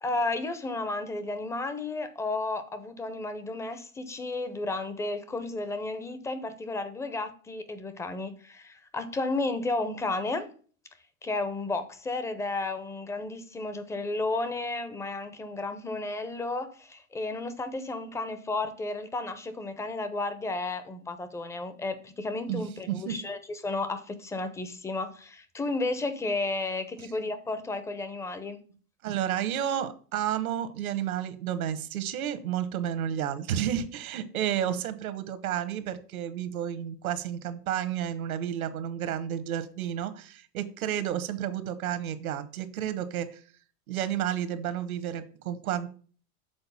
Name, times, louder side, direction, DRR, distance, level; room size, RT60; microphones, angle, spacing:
voice 1, 0.0-10.5 11.2-28.6, left 2 dB, 5° left, 0.5 m, -33 dB
voice 2, 22.5-23.2 29.0-43.4 43.9-45.9, right 10 dB, 75° right, 1.2 m, -31 dB
6.9 x 3.9 x 5.5 m
hypercardioid pair, 120°, 43 cm